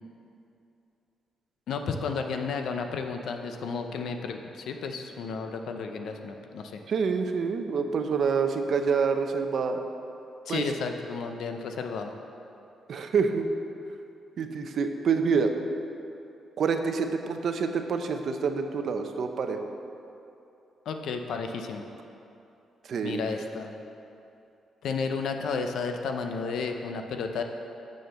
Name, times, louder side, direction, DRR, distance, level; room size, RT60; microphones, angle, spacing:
voice 1, 1.7-6.8 10.5-12.1 20.9-21.8 23.0-23.7 24.8-27.4, left 5 dB, 75° left, 5 dB, 0.7 m, -32 dB
voice 2, 6.9-9.8 10.5-10.6 12.9-13.5 14.4-15.5 16.6-19.6 22.8-23.2, right 5 dB, 60° right, 6 dB, 0.6 m, -27 dB
6.5 x 6.4 x 7.0 m, 2.8 s
cardioid pair, 120°, 0 cm